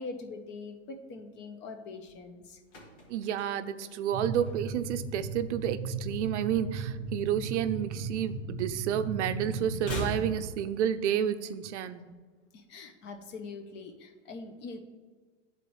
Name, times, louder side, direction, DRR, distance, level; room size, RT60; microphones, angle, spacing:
voice 1, 0.0-2.6 12.5-14.8, left 3 dB, 30° left, 7 dB, 0.6 m, -43 dB
sound 1, 2.4-5.0 5.3-5.6 5.9-7.3 7.6-9.0 9.2-11.3 11.6-11.7, left 2 dB, 70° left, 1.9 m, -43 dB
voice 2, 3.1-12.0, right 9 dB, 70° right, 11 dB, 0.5 m, -30 dB
sound 2, 4.1-10.4, right 4 dB, 35° right, 1.1 m, -36 dB
10.5 x 4.1 x 3.1 m, 1.4 s
hypercardioid pair, 130°, 37 cm